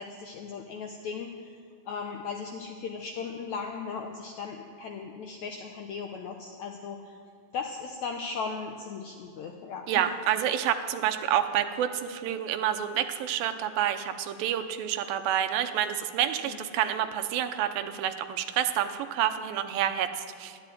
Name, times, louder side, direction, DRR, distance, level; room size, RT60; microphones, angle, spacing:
voice 1, 0.0-1.5 1.9-7.2 7.5-10.0 16.4-16.6, left 5 dB, 75° left, 3 dB, 1.7 m, -37 dB
voice 2, 9.9-20.6, right 10 dB, 80° right, 8 dB, 2.5 m, -28 dB
12.5 x 11.5 x 9.2 m, 2.2 s
omnidirectional pair, 4.3 m